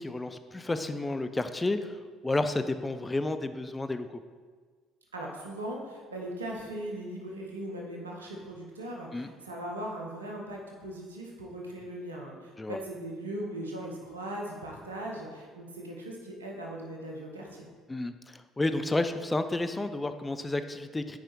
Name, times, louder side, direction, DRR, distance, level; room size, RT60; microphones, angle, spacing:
voice 1, 0.0-4.2 9.1-9.3 12.6-12.8 17.9-21.2, left 2 dB, 20° left, 9 dB, 0.4 m, -31 dB
voice 2, 5.1-17.7, right 1 dB, 90° right, -1 dB, 0.9 m, -39 dB
5.9 x 4.9 x 4.5 m, 1.5 s
hypercardioid pair, 55°, 0 cm